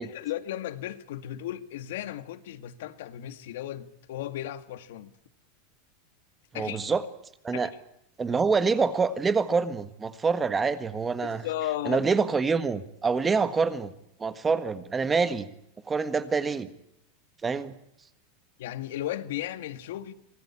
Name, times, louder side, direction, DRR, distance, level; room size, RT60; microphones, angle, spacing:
voice 1, 0.0-5.1 6.5-6.9 7.5-7.7 11.4-12.1 18.6-20.1, left 13 dB, 75° left, 1.9 m, -35 dB
voice 2, 6.5-7.0 7.4-7.7 8.2-11.5 11.8-13.9 14.2-15.5 15.9-16.7 17.4-17.7, right 4 dB, 15° right, 1.6 m, -26 dB
26.0 x 20.0 x 8.7 m
supercardioid pair, 155°, 0 cm